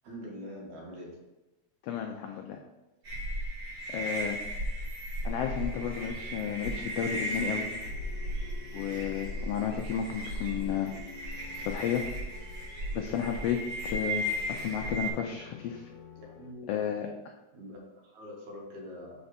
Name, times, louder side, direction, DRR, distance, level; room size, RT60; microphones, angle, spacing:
voice 1, 0.0-1.2 16.2-16.9 17.5-19.2, equal, 80° right, -2 dB, 2.8 m, -44 dB
voice 2, 1.8-2.6 3.9-4.4 5.2-7.7 8.7-10.9 11.7-12.0 12.9-13.6 13.8-14.3 14.6-15.9 16.7-17.3, left 9 dB, 90° left, 3 dB, 1.3 m, -32 dB
sound 1, 3.0-15.1, right 1 dB, 50° right, 2.3 m, -36 dB
sound 2, 5.2-16.5, left 7 dB, 70° left, 1.6 m, -51 dB
4.9 x 4.3 x 5.4 m, 1.0 s
omnidirectional pair, 3.4 m